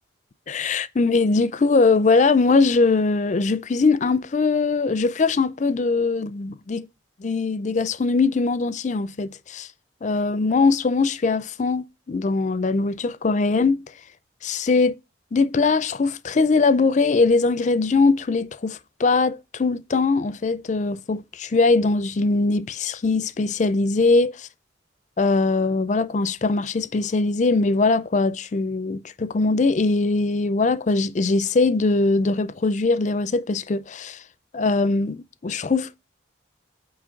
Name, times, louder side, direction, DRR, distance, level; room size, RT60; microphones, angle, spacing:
voice 1, 0.5-6.9 7.2-9.7 10.0-13.8 14.4-14.9 15.3-24.5 25.2-34.2 34.5-36.0, left 3 dB, 40° left, 0.4 m, -21 dB
8.8 x 3.0 x 5.0 m
head